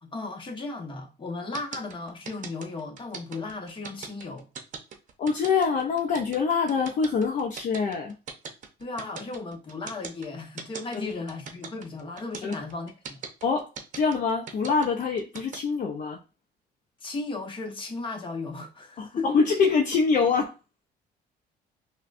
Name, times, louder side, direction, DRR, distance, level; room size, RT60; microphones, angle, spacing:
voice 1, 0.0-4.5 8.8-13.2 17.0-19.3, left 3 dB, 30° left, 1.1 m, -35 dB
sound 1, 1.5-15.6, right 6 dB, 50° right, 0.7 m, -40 dB
voice 2, 5.2-8.2 10.9-11.1 12.4-12.6 13.4-16.2 19.0-20.5, left 5 dB, 50° left, 0.6 m, -25 dB
5.6 x 2.2 x 2.5 m
cardioid pair, 110°, 17 cm